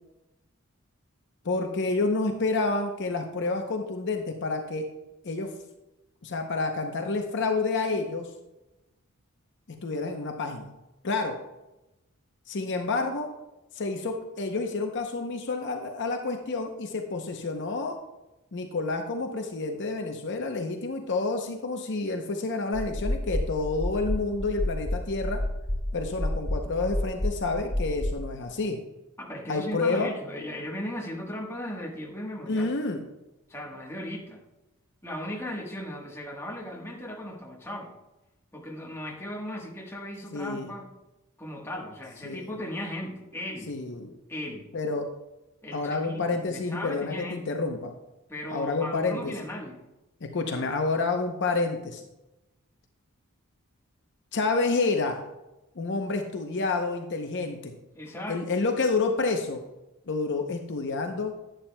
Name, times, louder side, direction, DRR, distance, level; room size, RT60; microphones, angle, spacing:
voice 1, 1.4-4.9 5.2-5.5 6.2-8.3 9.8-10.7 11.0-11.4 12.5-13.3 13.7-18.0 18.5-25.4 25.9-28.8 29.5-30.1 32.5-33.0 40.3-40.7 42.3-42.5 43.7-44.1 44.7-45.1 45.7-47.9 48.5-49.3 50.3-52.0 54.3-55.2 55.8-57.7 58.3-59.6 60.1-61.3, left 3 dB, 55° left, 4 dB, 0.7 m, -29 dB
sound 1, 22.7-28.3, left 1 dB, 30° left, 2.6 m, -30 dB
voice 2, 29.2-32.7 33.5-34.4 35.0-37.9 38.5-40.9 41.4-43.8 44.3-44.7 45.6-47.4 48.3-49.8 57.9-58.6, left 1 dB, 10° left, -1 dB, 1.2 m, -37 dB
11.0 x 9.1 x 2.2 m, 0.98 s
head